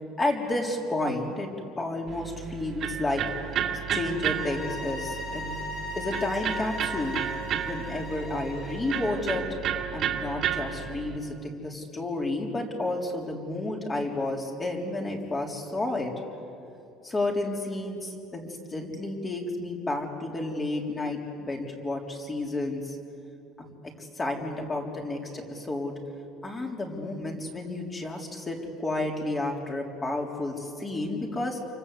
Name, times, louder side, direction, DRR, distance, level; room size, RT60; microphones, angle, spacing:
voice 1, 0.2-3.2 3.9-5.5 6.0-7.2 7.7-9.4 9.9-16.1 17.0-23.0 23.6-23.7 24.0-25.9 26.4-31.6, left 2 dB, 20° left, 0 dB, 3.8 m, -31 dB
Electric guitar, 2.1-11.2, right 8 dB, 45° right, 2.4 m, -32 dB
sound 1, 4.1-9.3, left 2 dB, 50° left, 5.4 m, -38 dB
29.0 x 24.5 x 8.3 m, 2.6 s
cardioid pair, 145°, 0 cm